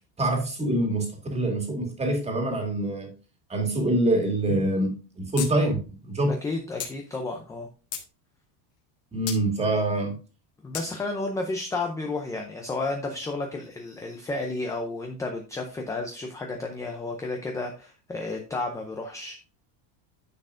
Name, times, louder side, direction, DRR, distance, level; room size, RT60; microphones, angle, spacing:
voice 1, 0.2-3.1 3.5-6.3 9.1-10.1, right 1 dB, 15° right, 3 dB, 2.0 m, -25 dB
sound 1, 5.4-5.5 5.8-5.9 6.8-6.9 7.5-8.1 9.3-9.4 10.7-10.9, left 7 dB, 30° left, 1.6 m, -33 dB
voice 2, 6.3-7.7 10.6-19.4, left 2 dB, 5° left, 3 dB, 0.5 m, -32 dB
9.9 x 6.4 x 2.6 m, 0.33 s
cardioid pair, 160°, 47 cm